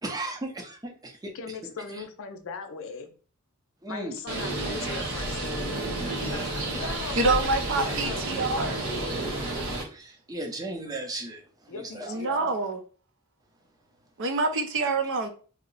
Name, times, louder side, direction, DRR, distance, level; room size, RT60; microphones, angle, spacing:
voice 1, 0.0-1.3 1.9-2.0 3.8-4.2 9.9-12.2, right 2 dB, 15° right, 0.6 m, -36 dB
voice 2, 1.3-3.1 3.9-7.5 7.8-8.2 11.7-12.5, left 5 dB, 65° left, 0.5 m, -39 dB
Bird, 4.3-9.8, right 2 dB, 75° right, 1.1 m, -31 dB
voice 3, 7.2-8.9 12.1-12.8 14.2-15.3, right 3 dB, 60° right, 0.5 m, -26 dB
2.7 x 2.1 x 3.9 m
head